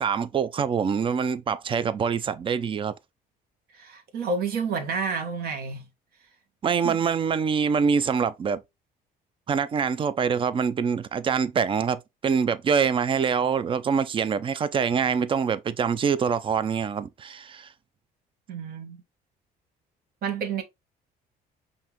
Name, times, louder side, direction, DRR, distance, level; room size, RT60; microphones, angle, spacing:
voice 1, 0.0-2.9 6.6-8.6 9.5-17.7, right 6 dB, 30° right, 0.5 m, -25 dB
voice 2, 3.7-5.9 6.8-7.0 18.5-19.0 20.2-20.6, right 5 dB, 65° right, 1.2 m, -30 dB
5.5 x 2.7 x 2.9 m
cardioid pair, 110°, 17 cm